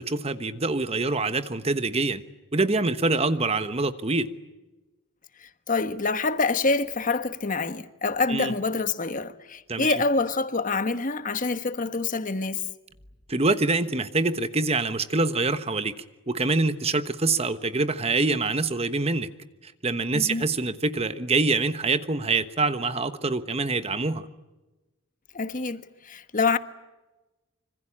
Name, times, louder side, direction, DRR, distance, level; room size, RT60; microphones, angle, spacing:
voice 1, 0.0-2.2 2.5-4.3 8.3-8.5 9.7-9.9 13.3-15.9 16.3-19.3 19.6-24.3, right 3 dB, 30° right, 1.2 m, -25 dB
voice 2, 5.4-12.7 20.1-20.5 25.3-26.6, left 3 dB, 40° left, 1.4 m, -26 dB
26.0 x 25.5 x 8.7 m
head